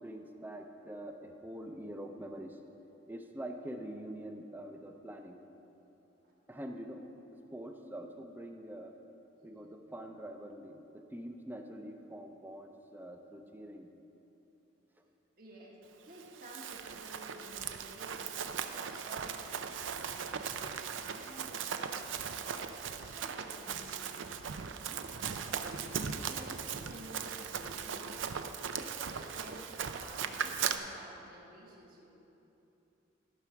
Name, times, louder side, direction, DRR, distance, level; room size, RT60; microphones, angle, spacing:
voice 1, 0.0-2.6 3.1-5.4 6.5-8.9 9.4-13.9, right 1 dB, 10° right, 4 dB, 0.5 m, -45 dB
voice 2, 15.4-28.4 28.8-32.1, right 1 dB, 50° right, -3 dB, 1.5 m, -52 dB
Run, 16.2-30.8, right 7 dB, 80° right, 0.5 m, -38 dB
14.0 x 6.1 x 5.8 m, 3.0 s
head